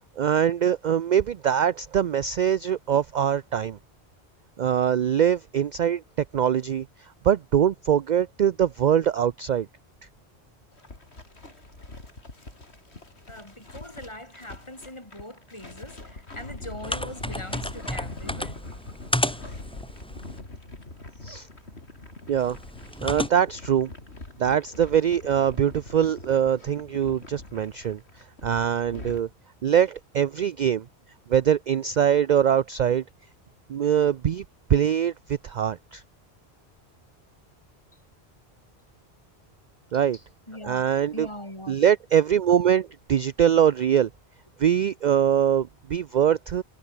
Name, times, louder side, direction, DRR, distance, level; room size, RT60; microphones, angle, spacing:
voice 1, 0.2-3.8 4.6-6.0 6.3-9.7 21.2-21.5 22.3-22.6 23.0-23.9 24.4-28.0 28.4-29.3 29.6-30.8 31.3-33.0 33.7-34.4 34.7-36.0 39.9-40.2 40.6-41.3 41.7-44.1 44.6-46.6, right 9 dB, 55° right, 0.6 m, -23 dB
sound 1, 10.7-29.2, left 2 dB, 85° left, 4.2 m, -43 dB
voice 2, 13.3-18.6 19.2-19.3 40.1-41.8, left 1 dB, 25° left, 4.6 m, -41 dB
sound 2, 16.8-20.4 22.4-23.3, equal, 5° left, 1.7 m, -32 dB
omnidirectional pair, 1.1 m